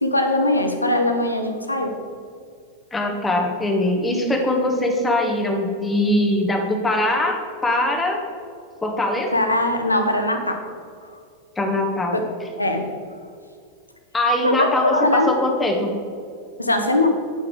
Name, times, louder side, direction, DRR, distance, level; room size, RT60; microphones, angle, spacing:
voice 1, 0.0-1.9 9.3-10.6 12.1-12.2 12.6-12.8 14.4-15.3 16.6-17.1, left 1 dB, 85° left, 5 dB, 1.0 m, -20 dB
voice 2, 2.9-7.4 7.6-8.2 8.8-9.3 11.6-12.2 14.1-15.9, left 1 dB, 10° left, 1 dB, 1.5 m, -21 dB
9.8 x 5.7 x 4.9 m, 2.2 s
figure-of-eight pair, 90°, 0 cm